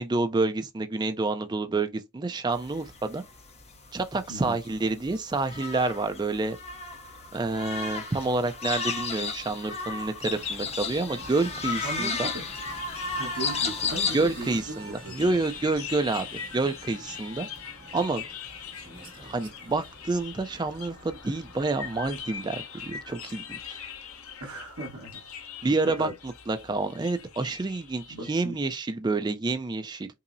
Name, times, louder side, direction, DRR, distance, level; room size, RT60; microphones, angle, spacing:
voice 1, 0.0-3.2 3.9-6.6 7.3-12.3 14.1-16.3 16.5-17.5 17.9-18.2 19.2-23.8 25.6-26.1 26.5-28.0 28.3-30.1, right 3 dB, 20° right, 0.3 m, -28 dB
sound 1, 2.5-14.6, left 4 dB, 30° left, 0.6 m, -34 dB
sound 2, 10.2-22.4, right 1 dB, 40° right, 0.8 m, -48 dB
sound 3, 10.3-28.6, left 7 dB, 70° left, 0.7 m, -43 dB
voice 2, 11.7-12.5 13.1-15.3 24.4-25.2 25.8-26.1 28.1-28.6, right 2 dB, 65° right, 1.2 m, -37 dB
5.3 x 2.0 x 2.6 m
head